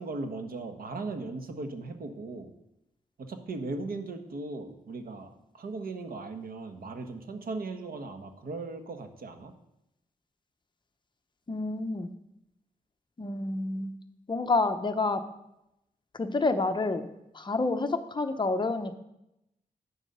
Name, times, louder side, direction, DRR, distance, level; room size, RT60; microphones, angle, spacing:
voice 1, 0.0-2.5 3.2-9.5, right 3 dB, 80° right, 6 dB, 1.2 m, -38 dB
voice 2, 11.5-12.1 13.2-13.9 14.3-15.2 16.1-17.1 17.3-19.0, left 3 dB, 30° left, 7 dB, 0.8 m, -28 dB
10.0 x 8.0 x 5.5 m, 0.85 s
wide cardioid pair, 130°, 15 cm